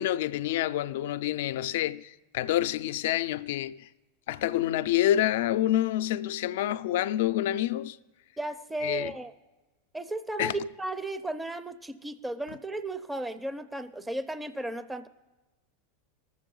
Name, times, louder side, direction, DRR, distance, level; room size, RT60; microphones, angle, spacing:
voice 1, 0.0-3.9 4.3-8.0 8.8-9.1 10.4-10.6, left 13 dB, 70° left, 0.3 m, -27 dB
voice 2, 8.4-9.3 9.9-15.1, right 1 dB, 10° right, 0.4 m, -34 dB
19.0 x 7.4 x 3.8 m
hypercardioid pair, 105°, 0 cm